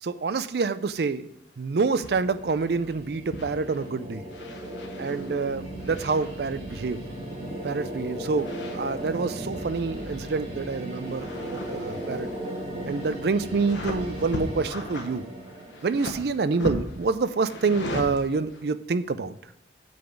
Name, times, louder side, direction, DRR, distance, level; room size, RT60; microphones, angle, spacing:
voice 1, 0.0-1.3 1.6-4.2 5.0-7.0 7.6-12.3 12.9-15.2 15.8-19.4, right 4 dB, 60° right, 13 dB, 0.4 m, -27 dB
sound 1, 1.7-16.7, right 1 dB, 30° right, 1.8 m, -37 dB
sound 2, 1.9-2.2 2.5-2.9 3.3-3.9 4.3-7.0 8.2-9.3 9.6-10.6 10.9-18.6, left 1 dB, 80° left, 1.3 m, -39 dB
8.4 x 4.0 x 7.0 m, 0.87 s
head